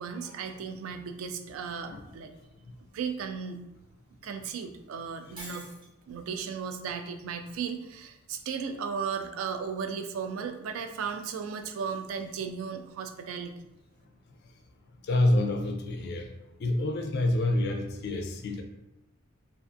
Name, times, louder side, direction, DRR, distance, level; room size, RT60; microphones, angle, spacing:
voice 1, 0.0-2.3 2.9-3.6 4.2-5.7 6.1-13.6, right 6 dB, 75° right, 7 dB, 0.3 m, -35 dB
Shatter, 5.4-5.9, right 2 dB, 25° right, 0.6 m, -44 dB
voice 2, 15.1-16.3 16.6-18.6, left 1 dB, 50° left, 5 dB, 0.3 m, -27 dB
2.4 x 2.4 x 2.5 m, 0.91 s
head